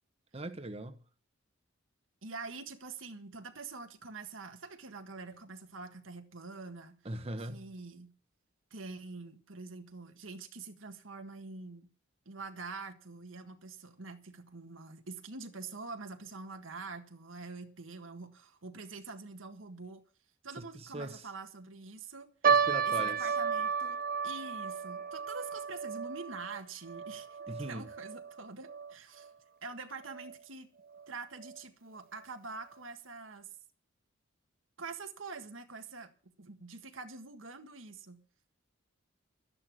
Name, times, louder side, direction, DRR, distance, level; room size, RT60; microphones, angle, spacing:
voice 1, 0.3-1.0 7.0-7.6 20.8-21.3 22.5-23.3 27.5-27.9, right 1 dB, 30° right, 1.0 m, -40 dB
voice 2, 2.2-7.0 7.4-8.1 8.7-11.9 12.3-20.0 20.4-22.3 22.9-29.3 29.6-30.7 31.1-33.5 34.8-36.1 36.4-38.2, right 4 dB, 80° right, 1.7 m, -45 dB
sound 1, 22.4-28.9 29.2-29.3 30.1-30.3 30.9-31.0 31.4-31.6, right 6 dB, 45° right, 0.6 m, -32 dB
12.5 x 11.0 x 6.3 m
head